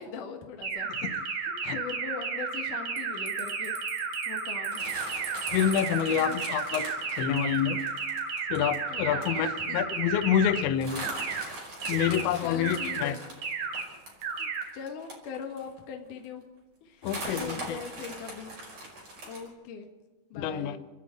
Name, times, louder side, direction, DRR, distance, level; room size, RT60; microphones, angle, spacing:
voice 1, 0.0-3.7 4.3-4.8 6.1-6.4 8.9-9.8 11.9-13.2 14.4-16.4 16.8-17.1 17.4-18.5 19.3-19.9 20.3-20.8, left 6 dB, 60° left, 3 dB, 2.4 m, -41 dB
sound 1, 0.6-10.6 11.0-11.4 11.8-12.2 12.6-13.0 13.4-13.8 14.2-14.6, right 5 dB, 55° right, 3.4 m, -33 dB
Bell, 3.0-6.1, right 10 dB, 75° right, 3.4 m, -45 dB
sound 2, 4.7-8.8 9.2-9.4 9.6-9.7 10.0-10.2 10.8-15.8 16.2-16.3 17.0-19.5, right 1 dB, 35° right, 6.3 m, -41 dB
voice 2, 5.5-7.8 8.5-11.1 11.9-13.2 17.0-17.8 20.3-20.8, left 9 dB, 85° left, 11 dB, 3.2 m, -28 dB
29.0 x 10.5 x 8.8 m, 1.2 s
omnidirectional pair, 5.2 m